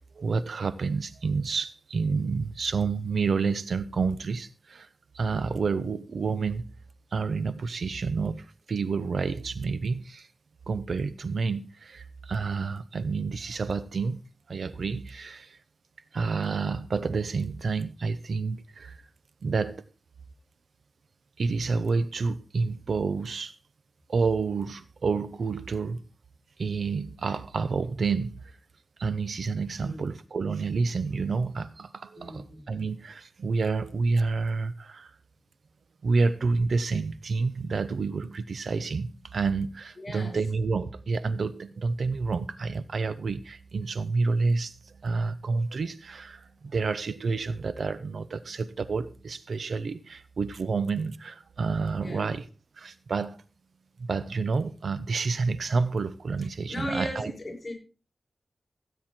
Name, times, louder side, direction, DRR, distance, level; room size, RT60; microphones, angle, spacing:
voice 1, 0.1-4.9 5.1-6.6 7.1-10.3 10.7-14.2 14.5-15.6 16.1-19.0 19.4-19.8 21.4-23.5 24.1-26.0 26.6-28.4 29.0-35.1 36.0-52.4 52.8-53.4 54.0-57.3, right 4 dB, 75° right, 0.8 m, -29 dB
voice 2, 32.2-32.7 40.0-40.4 52.0-52.3 56.7-57.7, equal, 30° left, 6.5 m, -36 dB
15.5 x 9.3 x 4.4 m
wide cardioid pair, 105°, 0 cm